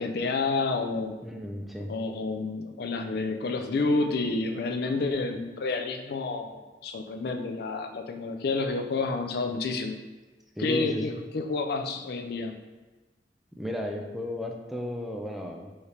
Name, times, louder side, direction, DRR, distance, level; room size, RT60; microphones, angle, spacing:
voice 1, 0.0-1.2 1.9-10.0 10.6-12.6, left 3 dB, 60° left, 5 dB, 0.4 m, -29 dB
voice 2, 1.2-1.9 10.6-11.2 13.5-15.9, equal, ahead, 1 dB, 0.4 m, -34 dB
4.7 x 2.8 x 3.3 m, 1.2 s
head